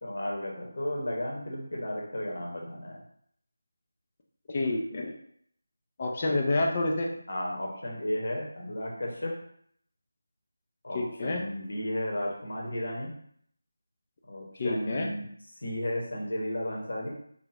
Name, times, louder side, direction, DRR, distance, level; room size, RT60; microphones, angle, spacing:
voice 1, 0.0-3.0 7.3-9.4 10.8-13.1 14.3-15.2 15.6-17.1, left 1 dB, 55° left, -2 dB, 1.0 m, -33 dB
voice 2, 4.5-5.1 6.0-7.1 10.9-11.4 14.6-15.1, left 2 dB, 30° left, -1 dB, 0.5 m, -28 dB
3.6 x 2.3 x 3.2 m, 0.66 s
figure-of-eight pair, 160°, 0 cm